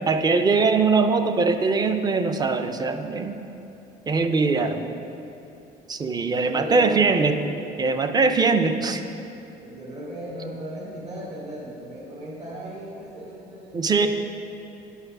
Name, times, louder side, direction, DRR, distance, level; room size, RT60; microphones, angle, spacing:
voice 1, 0.0-3.4 4.1-4.9 5.9-7.4 7.8-9.0 13.7-14.1, right 4 dB, 25° right, 8 dB, 0.5 m, -21 dB
voice 2, 4.6-5.1 6.5-7.2 9.6-14.1, right 1 dB, 45° right, -8 dB, 2.2 m, -36 dB
9.2 x 5.7 x 6.0 m, 2.8 s
cardioid pair, 110°, 17 cm